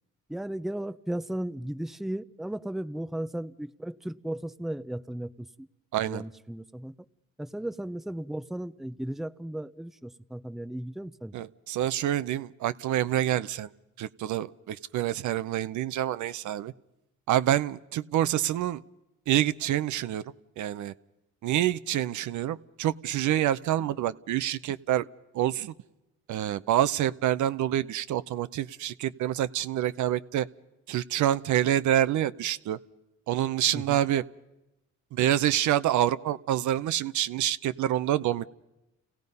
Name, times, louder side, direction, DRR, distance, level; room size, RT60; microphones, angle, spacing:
voice 1, 0.3-5.7 6.0-6.9 7.4-11.3 33.7-34.0, right 1 dB, ahead, 12 dB, 0.6 m, -35 dB
voice 2, 5.9-6.2 11.3-13.7 14.0-16.7 17.3-18.8 19.3-20.2 20.6-20.9 21.4-25.1 25.3-25.7 26.3-30.5 30.9-32.8 33.3-34.2 35.1-38.5, right 12 dB, 75° right, 14 dB, 0.7 m, -27 dB
29.0 x 17.0 x 5.4 m, 0.94 s
cardioid pair, 90°, 30 cm